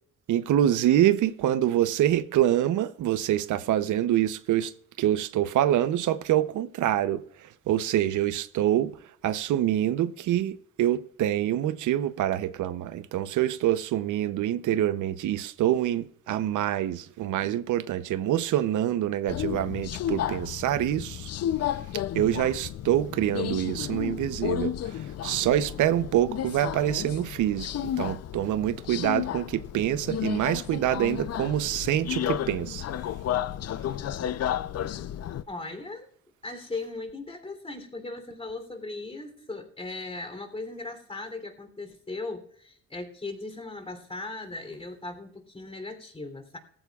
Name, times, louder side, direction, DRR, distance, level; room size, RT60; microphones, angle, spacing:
voice 1, 0.3-4.7 5.0-8.9 9.2-21.3 22.1-27.7 28.0-32.8, right 12 dB, 80° right, 0.8 m, -26 dB
Subway metro underground, 19.3-35.4, left 11 dB, 55° left, 0.6 m, -32 dB
voice 2, 35.5-36.1 36.4-46.6, left 3 dB, 20° left, 3.3 m, -38 dB
18.5 x 15.0 x 2.4 m
cardioid pair, 90°, 30 cm